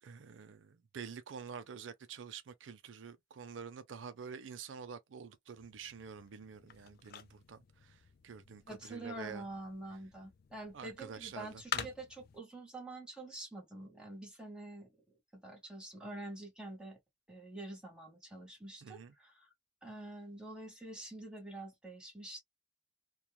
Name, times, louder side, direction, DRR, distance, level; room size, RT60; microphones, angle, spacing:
voice 1, 0.0-9.4 10.7-11.9 18.8-19.1, right 6 dB, 85° right, 0.5 m, -48 dB
sound 1, 5.5-12.4, left 9 dB, 55° left, 0.4 m, -47 dB
voice 2, 8.7-17.0 17.3-19.5 19.8-22.4, right 2 dB, 5° right, 1.3 m, -47 dB
3.0 x 2.3 x 2.2 m
head